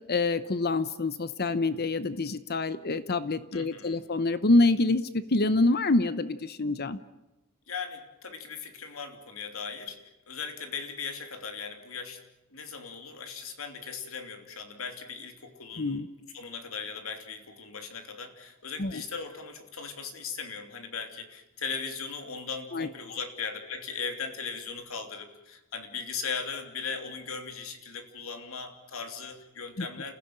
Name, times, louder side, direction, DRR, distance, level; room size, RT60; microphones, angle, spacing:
voice 1, 0.1-7.0 15.8-16.1 18.8-19.0 22.7-22.9 29.8-29.9, left 2 dB, 50° left, 13 dB, 0.9 m, -26 dB
voice 2, 3.5-4.0 7.7-12.2 12.5-16.0 16.3-30.1, left 5 dB, 80° left, 6 dB, 3.1 m, -38 dB
29.5 x 16.0 x 9.0 m, 0.97 s
head